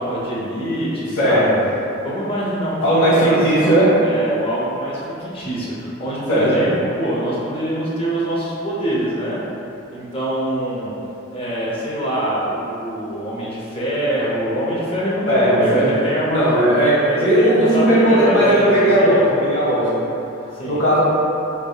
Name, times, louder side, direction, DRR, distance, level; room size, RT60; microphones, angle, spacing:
voice 1, 0.0-1.4 2.0-9.4 9.9-10.9 11.3-19.2 20.5-20.8, right 1 dB, 25° left, -7 dB, 0.6 m, -24 dB
voice 2, 1.1-1.7 2.8-4.0 6.3-6.7 15.3-15.9 16.2-20.1 20.6-21.0, right 1 dB, 60° left, -8 dB, 1.0 m, -16 dB
3.5 x 3.4 x 2.3 m, 2.8 s
head